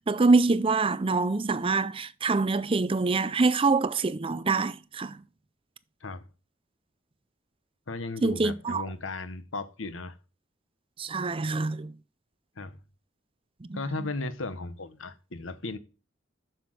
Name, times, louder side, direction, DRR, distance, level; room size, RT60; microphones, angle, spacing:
voice 1, 0.0-5.2 8.2-8.8 11.0-11.9 13.7-13.8, right 3 dB, 25° right, 0.5 m, -25 dB
voice 2, 7.9-10.2 12.6-12.7 13.7-15.8, left 3 dB, 85° left, 1.2 m, -36 dB
7.7 x 7.0 x 7.8 m
head